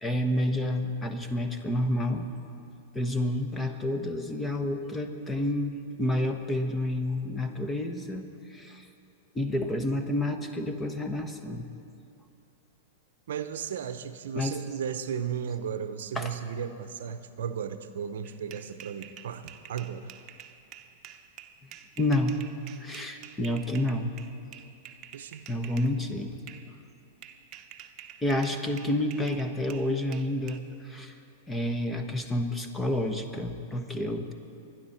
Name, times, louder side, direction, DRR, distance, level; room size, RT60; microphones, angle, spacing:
voice 1, 0.0-2.3 2.9-8.2 8.5-8.8 9.3-11.7 14.3-14.6 16.1-16.3 22.0-22.4 22.8-24.1 25.5-26.4 28.2-31.1 31.5-34.3, left 1 dB, 10° left, 6 dB, 1.2 m, -29 dB
voice 2, 13.3-20.1 25.1-25.5, right 8 dB, 75° right, 10 dB, 0.7 m, -35 dB
sound 1, 18.2-25.9 26.5-26.7 27.2-30.6, right 10 dB, 35° right, 0.9 m, -48 dB
24.0 x 10.5 x 4.4 m, 2.7 s
hypercardioid pair, 115°, 0 cm